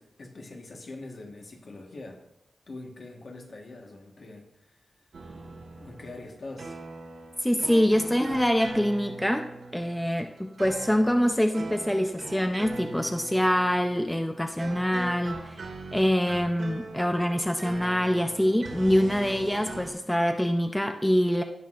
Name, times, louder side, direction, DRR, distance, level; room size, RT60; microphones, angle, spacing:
voice 1, 0.0-2.2 2.7-4.8 5.8-6.8, left 2 dB, 55° left, 2 dB, 1.4 m, -43 dB
sound 1, 5.1-19.9, right 3 dB, 85° right, 2.0 m, -41 dB
voice 2, 7.4-9.4 9.7-15.6 15.9-21.4, equal, 5° left, 5 dB, 0.6 m, -25 dB
17.0 x 5.9 x 2.5 m, 0.86 s
wide cardioid pair, 95°, 0 cm